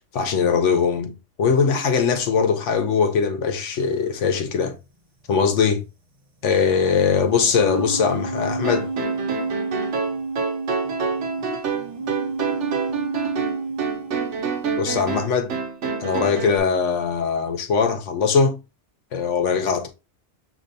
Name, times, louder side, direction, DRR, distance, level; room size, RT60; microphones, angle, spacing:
voice 1, 0.1-4.7 5.3-5.8 6.4-8.9 14.8-15.5 16.0-18.6 19.1-19.9, left 6 dB, 80° left, 1.1 m, -21 dB
sound 1, 4.4-4.5 7.2-14.7, right 3 dB, 40° right, 0.5 m, -30 dB
sound 2, 8.6-16.6, right 5 dB, 70° right, 1.0 m, -27 dB
6.4 x 2.9 x 2.7 m
omnidirectional pair, 1.2 m